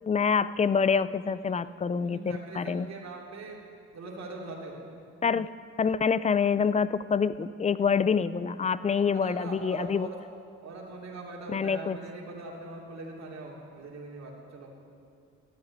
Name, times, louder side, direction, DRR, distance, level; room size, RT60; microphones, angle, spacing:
voice 1, 0.0-2.9 5.2-5.5 5.8-10.1 11.5-12.0, left 6 dB, 25° left, 16 dB, 0.4 m, -26 dB
voice 2, 1.3-1.7 2.0-3.6 3.9-4.8 8.9-10.2 10.6-14.7, right 3 dB, 60° right, -2 dB, 3.0 m, -42 dB
13.0 x 8.7 x 9.5 m, 2.4 s
cardioid pair, 90°, 30 cm